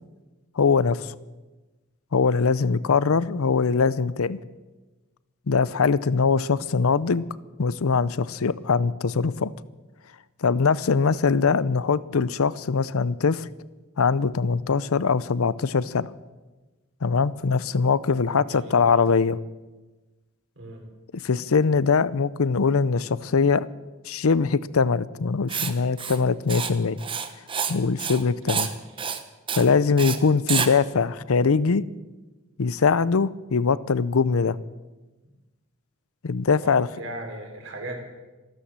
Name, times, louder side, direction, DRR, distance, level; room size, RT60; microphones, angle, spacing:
voice 1, 0.6-1.1 2.1-4.4 5.5-7.2 7.6-9.5 10.4-13.5 14.0-16.1 17.0-19.4 21.2-23.7 24.1-27.0 27.7-28.7 29.5-31.8 32.6-34.6 36.2-36.9, left 5 dB, 75° left, 18 dB, 0.6 m, -22 dB
voice 2, 18.3-18.9 20.6-20.8 28.5-28.7 36.6-38.0, right 1 dB, 55° right, 2 dB, 3.8 m, -38 dB
Writing, 25.5-25.7 26.0-26.2 26.5-26.7 27.0-27.7 28.0-28.2 28.5-28.7 29.0-29.2 29.5-29.7 30.0-30.2 30.5-30.7, right 7 dB, 25° right, 0.8 m, -28 dB
14.5 x 13.0 x 7.5 m, 1.2 s
head